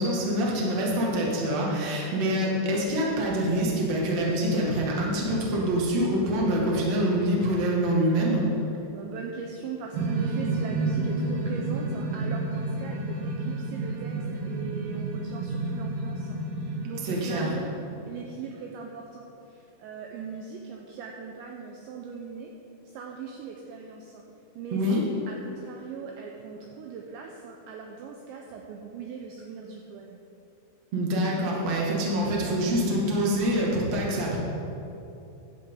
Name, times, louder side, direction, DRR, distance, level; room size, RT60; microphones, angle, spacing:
voice 1, 0.0-8.4 17.0-17.4 24.7-25.0 30.9-34.4, equal, 50° right, -4 dB, 2.2 m, -25 dB
voice 2, 8.9-17.7 18.1-22.5 22.9-24.2 24.6-24.8 25.3-30.2, right 5 dB, 80° right, 1 dB, 2.6 m, -40 dB
sound 1, 9.9-18.4, right 3 dB, 65° right, 3.3 m, -30 dB
16.0 x 11.0 x 3.9 m, 3.0 s
omnidirectional pair, 5.9 m